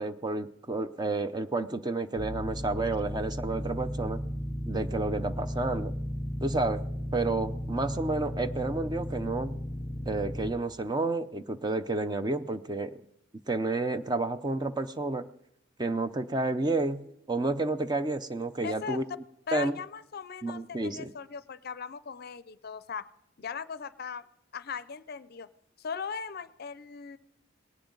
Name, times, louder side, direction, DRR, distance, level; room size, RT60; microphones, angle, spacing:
voice 1, 0.0-4.2 4.7-5.9 6.4-6.8 7.1-9.6 10.1-13.0 13.5-15.3 15.8-19.0 19.5-19.7 20.4-21.1, right 2 dB, 20° right, 10 dB, 0.5 m, -30 dB
sound 1, 2.2-10.5, equal, 5° right, 1.7 m, -35 dB
voice 2, 18.6-19.0 19.5-23.1 23.4-24.2 24.5-25.5 25.8-27.2, left 6 dB, 50° left, 15 dB, 0.5 m, -38 dB
19.5 x 17.5 x 3.9 m, 0.79 s
head